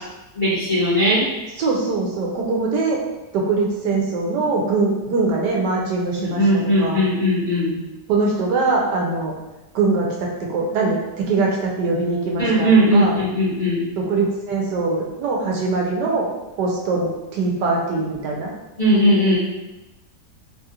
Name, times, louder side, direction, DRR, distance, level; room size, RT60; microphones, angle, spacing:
voice 1, 0.3-1.3 6.2-7.7 12.4-13.8 18.8-19.4, equal, 30° left, -10 dB, 1.2 m, -18 dB
voice 2, 1.6-3.0 3.3-6.4 6.8-7.0 8.1-9.3 9.7-13.1 14.0-16.3 16.6-18.5, right 3 dB, 75° right, -1 dB, 1.2 m, -22 dB
3.6 x 2.4 x 2.8 m, 1.0 s
omnidirectional pair, 1.8 m